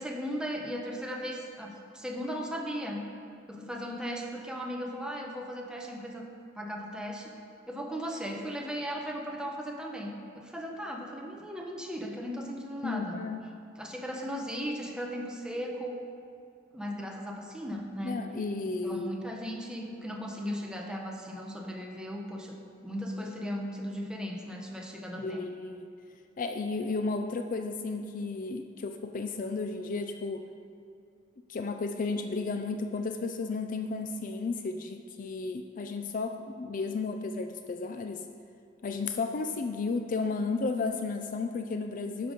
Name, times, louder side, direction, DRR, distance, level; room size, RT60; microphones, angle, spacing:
voice 1, 0.0-3.0 3.5-6.3 6.5-7.3 7.7-13.2 13.8-16.0 16.7-18.2 18.6-22.6 22.8-25.4, equal, 5° right, 0 dB, 0.9 m, -37 dB
voice 2, 12.8-13.4 18.0-19.1 25.2-25.9 26.4-30.4 31.5-38.2 38.8-42.3, left 3 dB, 45° left, 6 dB, 0.4 m, -33 dB
11.5 x 5.3 x 5.1 m, 2.5 s
head